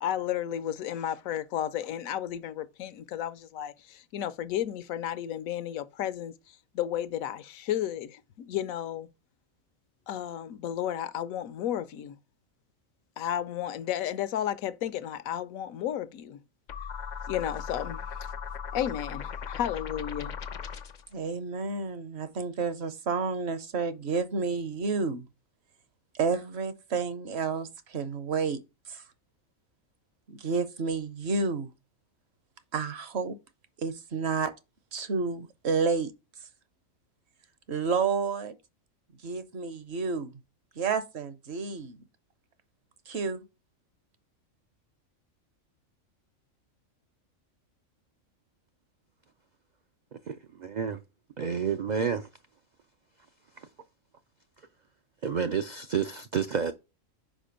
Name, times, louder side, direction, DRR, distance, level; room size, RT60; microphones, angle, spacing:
voice 1, 0.0-6.3 6.7-9.1 10.1-12.1 13.2-16.4 17.3-18.3 18.7-20.3, left 11 dB, 85° left, 1.1 m, -33 dB
sound 1, 16.7-21.1, left 7 dB, 55° left, 0.5 m, -38 dB
voice 2, 21.1-25.3 26.1-28.6 28.9-29.0 30.3-31.7 32.7-33.4 33.8-34.5 34.9-36.1 37.7-38.5 39.2-40.3 40.8-42.0 43.1-43.4, right 5 dB, 60° right, 1.0 m, -30 dB
voice 3, 50.1-51.0 51.4-52.3 53.6-53.7 55.2-56.7, right 6 dB, 75° right, 0.4 m, -30 dB
5.1 x 4.4 x 5.1 m
omnidirectional pair, 1.4 m